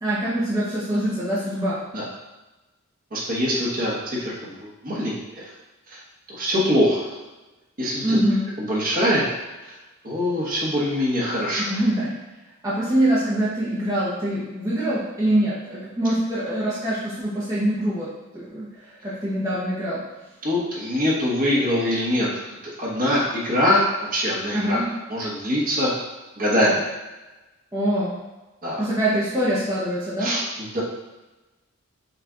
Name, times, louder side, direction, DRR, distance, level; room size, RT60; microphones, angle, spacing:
voice 1, 0.0-1.8 8.0-8.5 11.6-12.2 12.6-18.1 18.3-20.0 24.5-24.9 27.7-28.2 28.8-30.3, right 1 dB, 15° right, -10 dB, 0.8 m, -24 dB
voice 2, 3.1-5.5 5.9-6.0 6.4-7.0 7.8-8.2 8.6-9.3 10.0-11.7 20.4-22.3 22.8-23.8 24.1-24.8 25.1-25.9 26.4-26.8 28.6-28.8 30.2-30.8, equal, 40° right, -5 dB, 1.1 m, -23 dB
5.7 x 2.6 x 3.7 m, 1.1 s
head